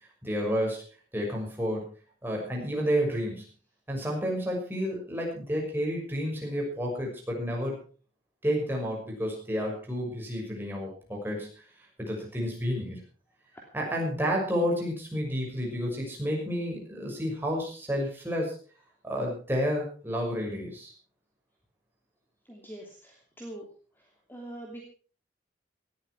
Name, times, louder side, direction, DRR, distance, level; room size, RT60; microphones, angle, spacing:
voice 1, 0.2-0.8 1.1-1.8 2.2-3.4 3.9-7.7 8.4-11.5 12.0-13.0 13.7-18.6 19.0-20.9, equal, 10° right, -1 dB, 6.1 m, -30 dB
voice 2, 22.5-23.7 24.0-24.8, right 1 dB, 10° left, 0 dB, 2.8 m, -44 dB
18.5 x 13.5 x 4.8 m, 0.40 s
head